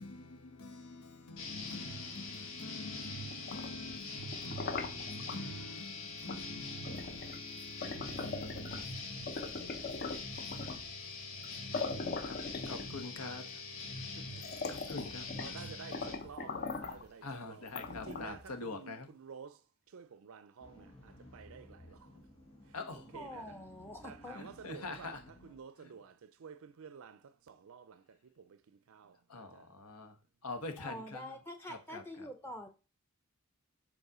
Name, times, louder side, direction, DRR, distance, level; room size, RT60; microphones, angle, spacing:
voice 1, 0.0-9.3 12.2-12.4 12.7-13.4 14.7-15.3 17.2-19.1 22.7-23.1 24.3-25.2 25.8-25.9 29.3-30.2 30.4-31.2 31.7-32.0, left 3 dB, 85° left, 1.2 m, -46 dB
sound 1, 1.4-16.2, left 3 dB, 65° left, 1.7 m, -43 dB
sound 2, 3.3-5.4 6.3-6.5 6.8-8.9 9.3-10.9 11.4-11.5 11.7-13.2 13.9-14.0 14.3-15.6 15.9-17.1 17.7-18.5, left 4 dB, 45° left, 0.7 m, -41 dB
voice 2, 13.0-13.6 13.9-15.0 15.2-23.6 24.0-29.7 30.9-31.1 31.9-32.0, right 6 dB, 65° right, 0.5 m, -52 dB
sound 3, 20.6-25.6, equal, 25° left, 2.3 m, -57 dB
voice 3, 23.1-24.4 30.8-32.7, left 1 dB, 10° left, 0.6 m, -45 dB
5.4 x 4.2 x 6.1 m
head